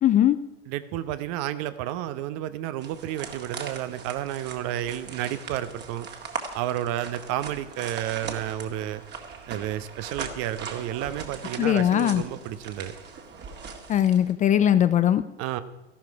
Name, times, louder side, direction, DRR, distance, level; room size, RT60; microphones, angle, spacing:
voice 1, 0.0-0.4 11.6-12.2 13.9-15.2, left 10 dB, 25° left, 13 dB, 0.4 m, -20 dB
voice 2, 0.7-6.1 6.5-9.0 9.5-12.9 15.4-15.6, right 12 dB, 50° right, 13 dB, 0.9 m, -31 dB
sound 1, 2.8-14.3, right 5 dB, 30° right, 1.9 m, -40 dB
13.5 x 12.0 x 4.8 m, 0.93 s
hypercardioid pair, 95°, 33 cm